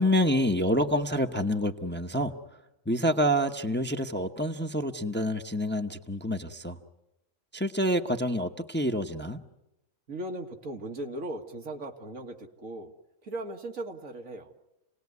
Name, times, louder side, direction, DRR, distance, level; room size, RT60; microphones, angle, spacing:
voice 1, 0.0-2.3 2.9-6.8 7.5-9.4, equal, 10° left, 5 dB, 0.9 m, -27 dB
voice 2, 10.1-12.9 13.2-14.5, right 1 dB, 80° right, 4 dB, 2.3 m, -38 dB
29.0 x 19.0 x 9.5 m, 0.92 s
omnidirectional pair, 1.4 m